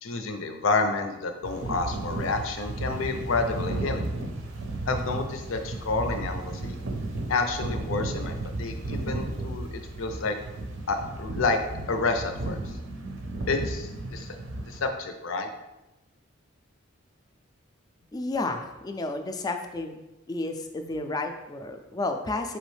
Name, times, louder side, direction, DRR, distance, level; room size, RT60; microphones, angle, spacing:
voice 1, 0.0-4.1 4.8-6.8 7.3-10.3 10.9-11.6 11.9-12.8 13.5-14.4 14.6-15.5, left 3 dB, 85° left, 6 dB, 0.5 m, -29 dB
sound 1, 1.4-14.9, right 2 dB, 75° right, 0.6 m, -34 dB
voice 2, 18.1-20.0 20.3-22.6, left 2 dB, 20° left, 5 dB, 0.3 m, -31 dB
4.8 x 3.0 x 3.2 m, 1.0 s
head